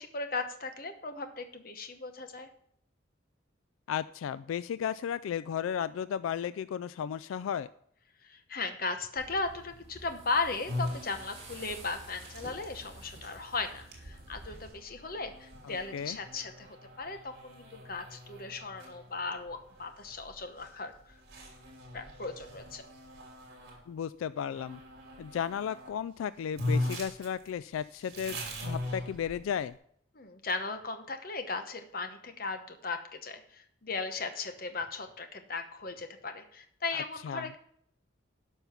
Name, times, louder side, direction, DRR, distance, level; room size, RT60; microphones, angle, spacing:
voice 1, 0.0-2.5 8.2-20.9 21.9-22.8 30.1-37.6, left 3 dB, 45° left, 8 dB, 1.0 m, -37 dB
voice 2, 3.9-7.7 15.6-16.2 23.9-24.8 25.2-29.8 36.9-37.5, left 8 dB, 90° left, 16 dB, 0.3 m, -34 dB
sound 1, 9.2-14.7, right 2 dB, 30° right, 4.8 m, -50 dB
sound 2, 10.7-23.8 24.5-25.9 26.2-26.3 26.6-29.7, left 1 dB, 50° right, 2.8 m, -40 dB
12.0 x 5.4 x 5.7 m, 0.66 s
head